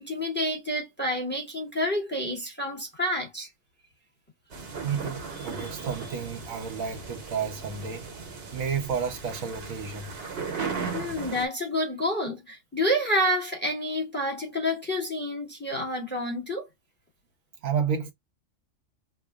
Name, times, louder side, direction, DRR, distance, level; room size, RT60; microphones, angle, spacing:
voice 1, 0.0-3.5 10.9-16.7, equal, 10° left, 1.0 m, -29 dB
sound 1, 4.5-11.5, right 5 dB, 55° right, 1.0 m, -37 dB
voice 2, 4.8-8.1 8.5-10.2 10.5-10.7 17.6-18.1, right 6 dB, 85° right, 1.2 m, -31 dB
3.4 x 2.1 x 3.5 m
omnidirectional pair, 1.4 m